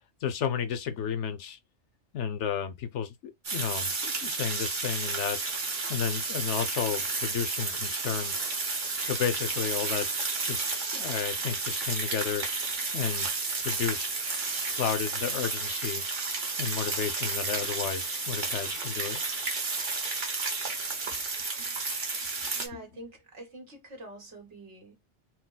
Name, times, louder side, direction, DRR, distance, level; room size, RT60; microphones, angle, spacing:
voice 1, 0.2-1.6 2.1-5.4 5.9-8.3 9.0-10.1 10.4-12.5 12.9-13.3 13.6-16.0 16.6-19.2 21.6-21.7 22.7-22.8, left 8 dB, 80° left, 1.0 m, -32 dB
sound 1, 3.4-22.7, right 3 dB, 45° right, 1.1 m, -32 dB
voice 2, 22.6-25.0, right 1 dB, 75° right, 1.8 m, -45 dB
4.5 x 2.1 x 3.9 m
omnidirectional pair, 1.2 m